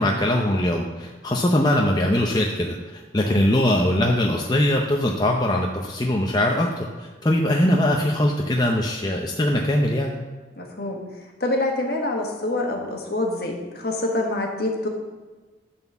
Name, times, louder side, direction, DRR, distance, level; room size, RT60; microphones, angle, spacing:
voice 1, 0.0-10.2, left 1 dB, 20° left, 0 dB, 0.6 m, -21 dB
voice 2, 10.6-14.9, left 2 dB, 55° left, 1 dB, 1.5 m, -26 dB
11.0 x 4.4 x 6.9 m, 1.3 s
head